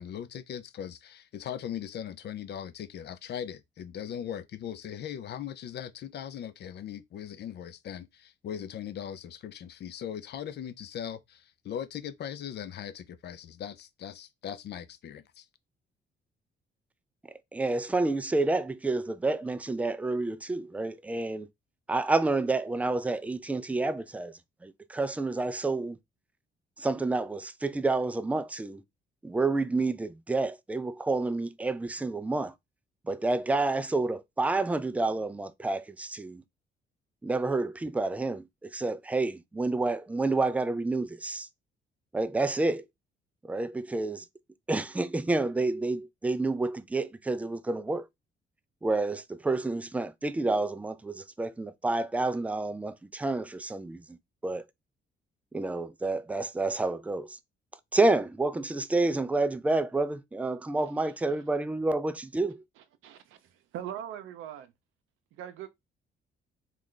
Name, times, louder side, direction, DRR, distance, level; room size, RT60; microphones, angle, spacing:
voice 1, 0.0-15.5, left 9 dB, 55° left, 0.5 m, -39 dB
voice 2, 17.5-21.5 21.9-26.0 26.8-28.8 29.2-32.5 33.1-36.4 37.2-41.5 42.1-42.8 43.4-44.2 44.7-48.1 48.8-54.2 54.4-54.6 55.5-57.4 57.9-62.5, right 2 dB, 5° right, 0.3 m, -29 dB
voice 3, 63.0-64.7 65.3-65.7, right 10 dB, 85° right, 0.6 m, -41 dB
3.2 x 2.4 x 3.8 m
cardioid pair, 90°, 20 cm